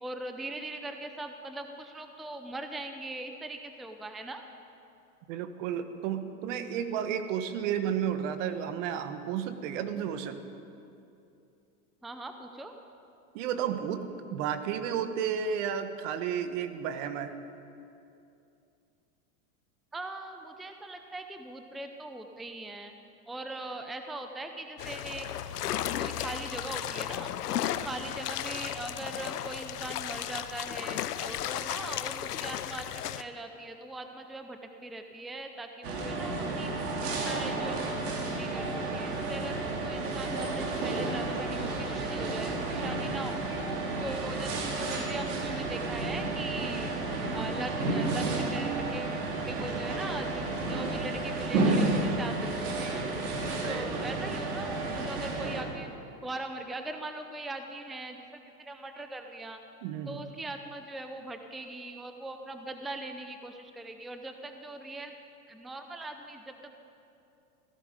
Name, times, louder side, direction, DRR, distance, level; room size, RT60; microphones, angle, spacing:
voice 1, 0.0-4.4 12.0-12.7 19.9-22.9 23.3-25.3 26.0-27.3 27.6-43.5 44.0-46.9 47.3-49.2 49.5-53.0 53.6-58.3 58.6-59.6 60.1-65.1 65.5-66.7, right 2 dB, ahead, 6 dB, 0.6 m, -40 dB
voice 2, 5.3-10.4 13.3-14.0 14.3-17.3 53.6-54.0 59.8-60.2, right 8 dB, 55° right, 9 dB, 1.4 m, -32 dB
sound 1, 24.8-33.2, left 11 dB, 85° left, 0.8 m, -34 dB
sound 2, 35.8-55.6, right 2 dB, 75° right, 3.4 m, -31 dB
17.0 x 16.0 x 5.1 m, 2.7 s
hypercardioid pair, 120°, 45 cm